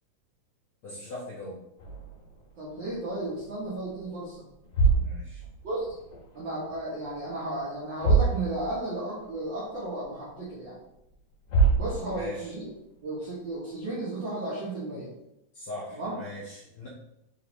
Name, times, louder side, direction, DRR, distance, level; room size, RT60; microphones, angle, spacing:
voice 1, 0.8-1.6 5.0-5.4 12.1-12.5 15.5-16.9, left 2 dB, 70° left, -6 dB, 1.3 m, -40 dB
sound 1, 1.8-3.4 3.7-4.0 4.5-6.4 6.6-7.3 7.6-7.7 7.9-9.0 9.3-9.4 10.0-10.1 11.1-11.2 11.5-12.5, right 4 dB, 50° left, 1.9 m, -26 dB
voice 2, 2.6-4.4 5.6-6.0 6.3-10.8 11.8-12.7 13.0-15.1 16.0-16.2, right 2 dB, 65° right, -8 dB, 1.2 m, -34 dB
4.7 x 3.4 x 3.0 m, 0.83 s
omnidirectional pair, 3.3 m